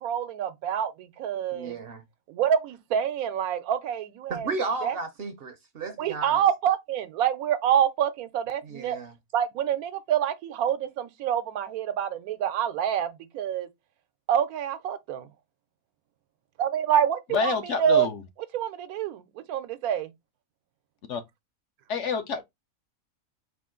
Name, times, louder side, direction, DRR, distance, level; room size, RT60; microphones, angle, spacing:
voice 1, 0.0-1.8 2.3-4.5 4.8-5.0 6.0-9.0 9.3-13.7 14.3-15.3 16.6-18.1 18.5-19.2 19.5-20.1, right 9 dB, 80° right, 1.1 m, -26 dB
voice 2, 1.5-2.0 4.3-6.4 8.6-9.1, right 4 dB, 55° right, 0.7 m, -33 dB
voice 3, 17.3-18.2 21.1-21.2 21.9-22.4, left 6 dB, 65° left, 0.9 m, -28 dB
4.5 x 2.4 x 3.6 m
omnidirectional pair, 1.5 m